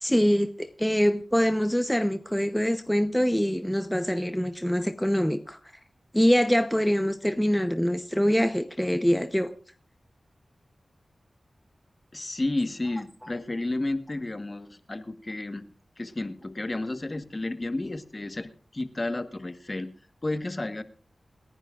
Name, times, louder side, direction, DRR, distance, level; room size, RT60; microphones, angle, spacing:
voice 1, 0.0-5.6 6.1-9.5, equal, 5° left, 0.8 m, -24 dB
voice 2, 12.1-19.9 20.2-20.8, left 2 dB, 35° left, 1.3 m, -32 dB
28.0 x 10.5 x 2.5 m
cardioid pair, 50°, 0 cm